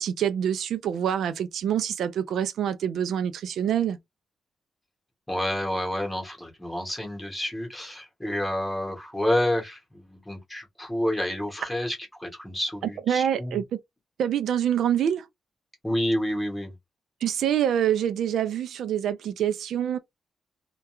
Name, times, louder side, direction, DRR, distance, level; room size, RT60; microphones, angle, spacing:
voice 1, 0.0-4.0 13.1-13.6 14.2-15.3 17.2-20.0, right 9 dB, 70° right, 0.3 m, -26 dB
voice 2, 5.3-13.6 15.8-16.7, left 1 dB, 10° left, 0.9 m, -29 dB
2.2 x 2.2 x 2.9 m
wide cardioid pair, 170°, 0 cm